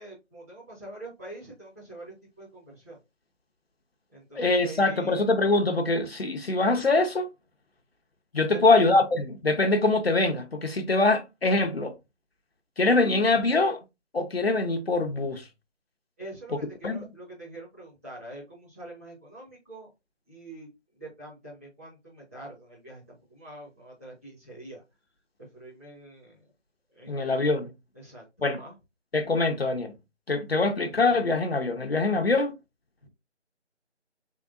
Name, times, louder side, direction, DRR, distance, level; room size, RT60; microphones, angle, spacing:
voice 1, 0.0-3.0 4.1-5.2 8.5-8.8 16.2-19.9 20.3-20.7 20.9-24.8 25.5-26.4 26.9-27.4 27.9-28.2 28.5-28.7 33.0-33.1, right 2 dB, 15° right, 1.2 m, -45 dB
voice 2, 4.4-7.3 8.3-11.9 12.8-13.8 14.1-15.5 16.8-17.0 27.1-27.7 28.4-28.6 29.1-29.9 30.3-32.5, left 3 dB, 60° left, 0.6 m, -23 dB
3.6 x 3.5 x 2.4 m
figure-of-eight pair, 165°, 36 cm